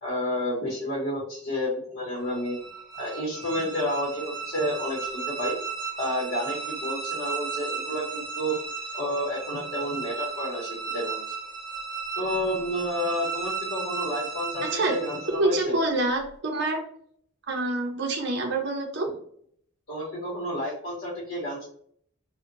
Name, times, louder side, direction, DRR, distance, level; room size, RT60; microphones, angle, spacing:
voice 1, 0.0-2.6 3.0-5.6 6.0-8.6 8.9-11.4 12.2-15.8 19.9-21.7, equal, 55° left, -5 dB, 0.9 m, -30 dB
sound 1, 2.3-15.6, right 5 dB, ahead, 0.7 m, -35 dB
voice 2, 15.4-16.8 17.5-19.1, right 2 dB, 55° right, 1 dB, 0.6 m, -26 dB
2.7 x 2.1 x 2.5 m, 0.63 s
head